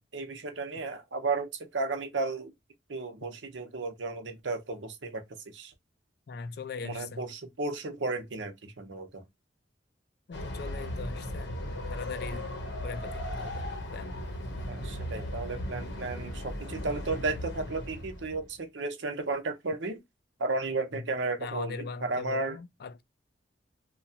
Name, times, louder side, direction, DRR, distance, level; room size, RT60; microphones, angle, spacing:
voice 1, 0.0-2.5 2.9-5.2 5.5-5.7 6.8-9.2 14.7-20.0 20.4-22.6, right 3 dB, 80° right, 0.7 m, -34 dB
voice 2, 6.3-7.2 10.3-11.6 11.9-12.5 12.8-14.1 20.9-21.0 21.4-23.0, left 4 dB, 55° left, 0.3 m, -40 dB
Train, 10.3-18.5, left 1 dB, 75° left, 0.7 m, -37 dB
2.8 x 2.2 x 2.7 m
head